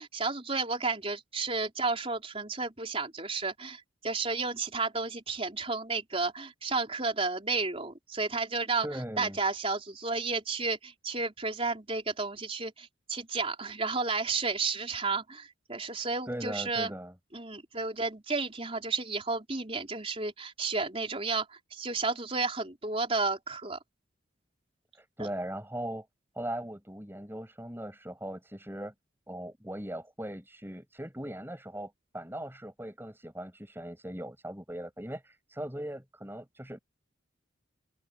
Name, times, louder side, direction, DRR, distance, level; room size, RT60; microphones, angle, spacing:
voice 1, 0.0-16.9 17.3-23.8, right 4 dB, 30° right, 4.4 m, -32 dB
voice 2, 8.8-9.4 16.3-17.1 25.0-26.1 26.3-28.9 29.3-36.8, right 1 dB, 10° right, 7.9 m, -39 dB
open air
head